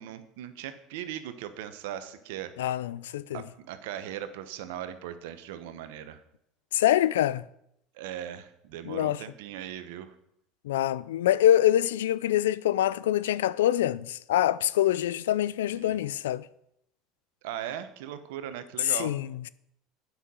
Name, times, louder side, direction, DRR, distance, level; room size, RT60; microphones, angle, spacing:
voice 1, 0.0-2.5 3.3-6.2 8.0-10.1 15.7-16.0 17.4-19.1, right 11 dB, 75° right, 1.0 m, -39 dB
voice 2, 2.6-3.4 6.7-7.5 8.9-9.2 10.6-16.5 18.8-19.5, left 12 dB, 90° left, 0.3 m, -25 dB
8.2 x 5.9 x 7.6 m
hypercardioid pair, 90°, 0 cm